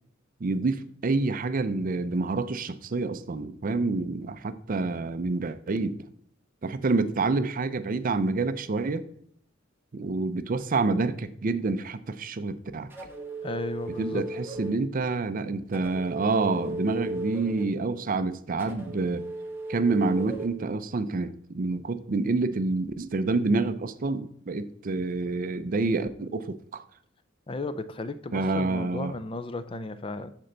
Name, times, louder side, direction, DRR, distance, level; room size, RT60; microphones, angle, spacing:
voice 1, 0.4-6.0 6.6-9.0 9.9-12.9 14.0-19.3 19.7-26.8 28.3-29.1, right 3 dB, 45° right, 0.5 m, -28 dB
sound 1, 12.9-14.8 15.7-17.7 18.6-20.5, right 2 dB, 10° right, 1.0 m, -36 dB
voice 2, 13.4-14.2 27.5-30.3, left 3 dB, 25° left, 0.4 m, -34 dB
13.0 x 4.4 x 3.9 m
head